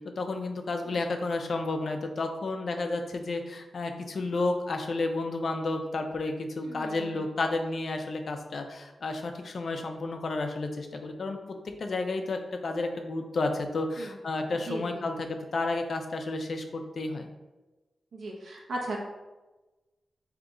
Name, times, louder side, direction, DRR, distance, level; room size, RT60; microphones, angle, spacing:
voice 1, 0.2-11.4 11.8-17.3, left 2 dB, 65° left, 5 dB, 0.5 m, -31 dB
voice 2, 6.6-7.3 14.0-14.1 14.5-15.0 18.1-19.0, right 2 dB, 80° right, -2 dB, 0.9 m, -37 dB
3.6 x 2.8 x 3.8 m, 1.1 s
cardioid pair, 50°, 0 cm